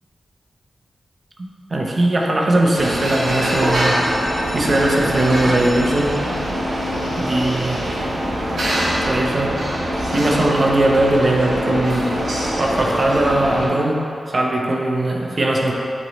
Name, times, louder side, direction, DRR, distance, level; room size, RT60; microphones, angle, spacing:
voice 1, 1.7-4.0 4.5-6.2 7.2-7.8 9.0-9.6 10.1-12.2 12.6-15.7, right 1 dB, 35° right, -1 dB, 0.7 m, -19 dB
sound 1, 2.8-13.7, equal, 60° right, 1.1 m, -23 dB
7.9 x 3.1 x 4.0 m, 2.7 s
wide cardioid pair, 180°, 0 cm